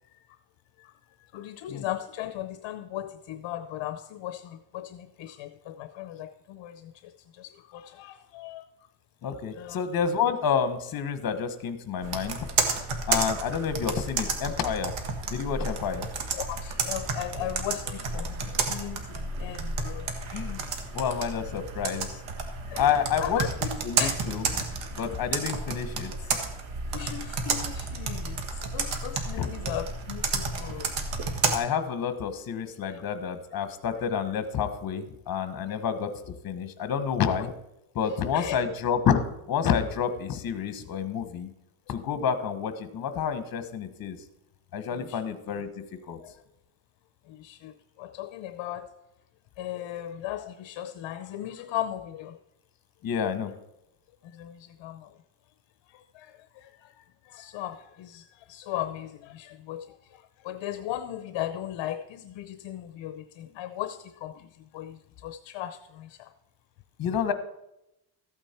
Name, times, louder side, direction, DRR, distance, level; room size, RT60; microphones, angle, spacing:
voice 1, 1.3-7.1 7.4-8.6 9.3-9.8 16.4-20.1 22.7-22.9 23.2-23.5 24.0-24.1 26.9-28.4 28.7-30.9 32.9-33.0 35.7-35.8 38.3-38.6 45.0-45.2 46.2-46.3 47.3-47.7 48.0-48.9 49.6-52.4 54.3-55.1 56.1-56.9 57.3-60.0 60.4-64.5 64.7-66.3, left 12 dB, 65° left, 10 dB, 0.7 m, -37 dB
voice 2, 9.2-12.5 13.1-14.9 15.3-16.1 20.3-20.7 20.9-22.2 22.8-24.6 25.0-26.1 29.3-29.5 31.5-37.5 37.9-39.2 39.5-41.5 41.9-44.2 44.7-45.7 46.1-46.2 53.0-53.5 67.0-67.3, left 7 dB, 45° left, 10 dB, 1.3 m, -29 dB
Computer keyboard, 12.0-31.6, right 4 dB, 85° right, 1.8 m, -31 dB
14.0 x 8.9 x 4.4 m, 0.87 s
cardioid pair, 145°, 49 cm